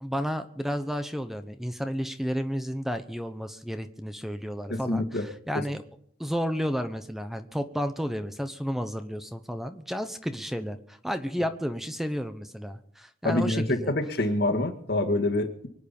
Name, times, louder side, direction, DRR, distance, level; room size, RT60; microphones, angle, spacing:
voice 1, 0.0-5.8 6.2-13.9, equal, ahead, 9 dB, 0.9 m, -32 dB
voice 2, 4.7-5.2 13.2-15.7, left 2 dB, 60° left, 5 dB, 2.0 m, -26 dB
24.0 x 9.4 x 5.4 m, 0.66 s
head